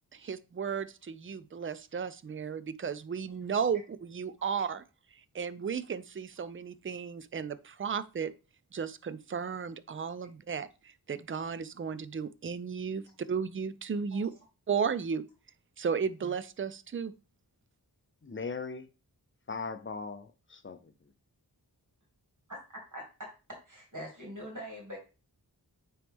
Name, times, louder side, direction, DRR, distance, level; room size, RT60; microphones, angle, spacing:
voice 1, 0.1-4.8 5.3-8.3 8.7-14.3 14.7-15.2 15.8-17.1, right 6 dB, 35° right, 0.4 m, -34 dB
voice 2, 18.2-18.9 19.5-20.9, left 4 dB, 30° left, 0.6 m, -39 dB
voice 3, 22.5-25.0, equal, 50° right, 2.3 m, -44 dB
9.0 x 3.1 x 3.5 m
wide cardioid pair, 65°, 40 cm